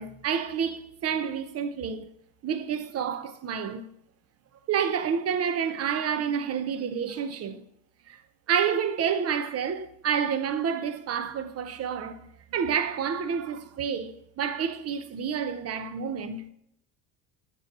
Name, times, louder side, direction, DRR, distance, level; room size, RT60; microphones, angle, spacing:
voice 1, 0.0-2.0 2.4-3.9 4.7-7.6 8.1-8.2 8.5-12.2 12.5-16.5, right 7 dB, 30° right, 0.7 m, -29 dB
7.4 x 3.1 x 5.3 m
hypercardioid pair, 75°, 49 cm